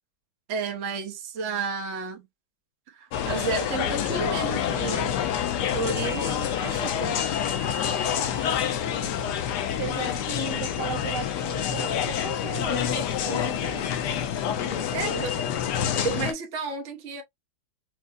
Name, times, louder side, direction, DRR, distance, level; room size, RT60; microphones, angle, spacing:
voice 1, 0.5-2.3 2.9-5.1 5.6-7.2 14.9-15.3 16.0-17.2, right 5 dB, 55° right, 1.0 m, -32 dB
sound 1, 3.1-16.3, left 9 dB, 80° left, 1.2 m, -27 dB
voice 2, 8.2-9.4 9.8-13.9 14.6-15.5, right 8 dB, 80° right, 1.4 m, -38 dB
4.8 x 2.0 x 2.5 m
omnidirectional pair, 1.7 m